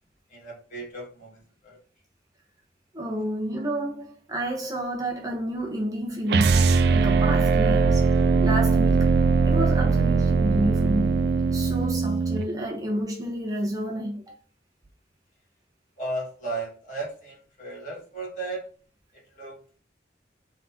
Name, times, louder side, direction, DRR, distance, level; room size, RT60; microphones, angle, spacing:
voice 1, 0.3-1.8 16.0-18.6 19.4-19.8, right 2 dB, 45° left, 1.9 m, -35 dB
voice 2, 2.9-9.2 9.5-14.3, right 1 dB, 20° right, 0.8 m, -30 dB
sound 1, 6.3-12.5, right 4 dB, 65° right, 0.3 m, -21 dB
3.7 x 3.5 x 2.9 m
head